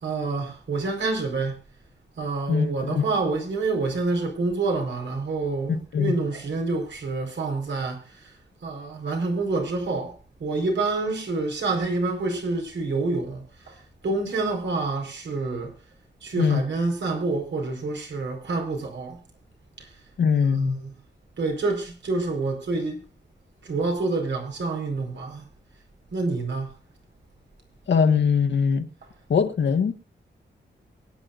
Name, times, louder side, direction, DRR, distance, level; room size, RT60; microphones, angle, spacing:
voice 1, 0.0-1.6 2.2-8.3 8.6-10.1 10.4-13.8 14.0-15.7 16.2-19.2 19.8-19.9 20.4-20.9 21.4-23.0 23.6-25.4 26.1-26.7, right 3 dB, 80° right, 4.6 m, -27 dB
voice 2, 2.5-3.1 5.7-6.1 16.4-16.6 20.2-20.8 27.9-28.9 29.3-29.9, left 6 dB, 75° left, 1.5 m, -22 dB
23.5 x 9.8 x 2.5 m
wide cardioid pair, 150°, 19 cm